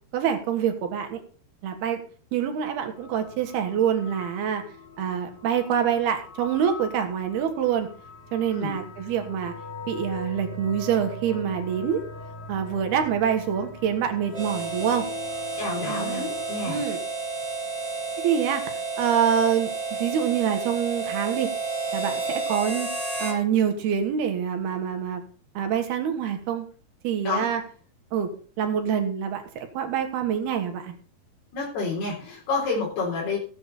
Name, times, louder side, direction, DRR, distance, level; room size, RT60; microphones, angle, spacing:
voice 1, 0.1-1.2 1.6-2.0 2.3-4.6 5.0-7.9 8.3-9.5 9.9-12.0 12.5-15.1 15.9-16.3 16.7-17.0 18.2-18.6 19.0-19.7 20.0-21.5 21.9-22.9 23.2-25.2 25.6-26.7 27.0-27.6 28.1-28.3 28.6-31.0, right 8 dB, 80° right, 5 dB, 3.6 m, -26 dB
sound 1, 2.9-16.8, left 3 dB, 60° left, 3.7 m, -42 dB
Harmonica, 14.3-23.4, right 3 dB, 10° right, 2.9 m, -31 dB
voice 2, 15.6-16.8 27.3-27.5 31.5-33.4, left 3 dB, 85° left, -3 dB, 5.8 m, -29 dB
16.0 x 8.5 x 4.2 m, 0.42 s
omnidirectional pair, 4.5 m